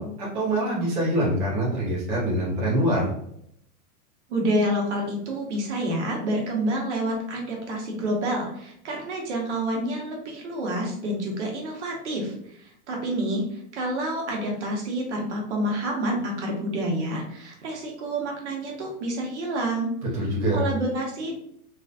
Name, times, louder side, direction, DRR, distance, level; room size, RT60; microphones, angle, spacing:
voice 1, 0.0-3.1 20.1-20.7, right 1 dB, 20° right, -8 dB, 0.6 m, -24 dB
voice 2, 4.3-19.9 20.5-21.4, right 1 dB, 50° right, 0 dB, 0.9 m, -28 dB
3.4 x 2.4 x 2.4 m, 0.71 s
hypercardioid pair, 165°, 46 cm